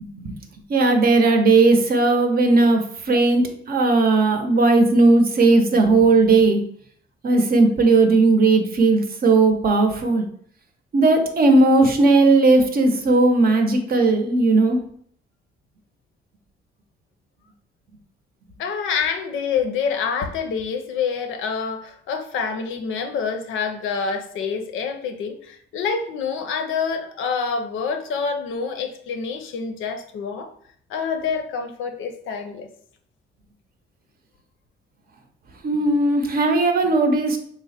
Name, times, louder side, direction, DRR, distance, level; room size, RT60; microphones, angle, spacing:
voice 1, 0.7-6.6 7.2-10.2 10.9-14.8 35.6-37.4, right 3 dB, 50° right, 5 dB, 0.6 m, -17 dB
voice 2, 18.6-30.5 30.9-32.7, left 5 dB, 80° left, 6 dB, 0.6 m, -27 dB
3.4 x 2.1 x 4.2 m, 0.62 s
cardioid pair, 90°, 20 cm